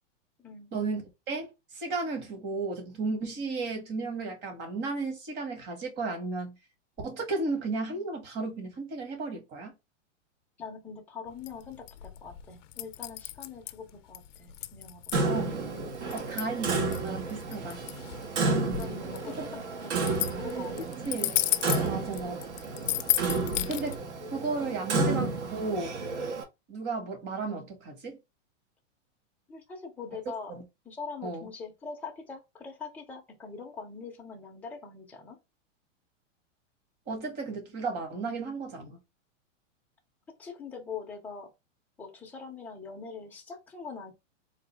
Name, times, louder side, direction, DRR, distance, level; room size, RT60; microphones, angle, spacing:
voice 1, 0.4-0.7 10.6-15.0 18.5-20.0 20.4-20.9 21.8-22.1 24.6-24.8 29.5-30.5 30.9-35.4 40.4-41.5 42.0-44.1, left 5 dB, 5° left, 0.4 m, -43 dB
voice 2, 1.3-6.5 7.0-9.7 15.3-15.6 16.1-17.8 19.4-19.5 21.0-21.4 21.9-22.4 23.7-24.0 24.3-26.0 26.7-28.2 30.5-30.6 31.2-31.5 37.1-39.0, right 3 dB, 30° right, 1.4 m, -34 dB
sound 1, 11.3-24.0, left 13 dB, 70° left, 0.5 m, -34 dB
Clock, 15.1-26.4, right 3 dB, 65° right, 1.3 m, -31 dB
3.9 x 2.5 x 3.2 m
supercardioid pair, 150°, 38 cm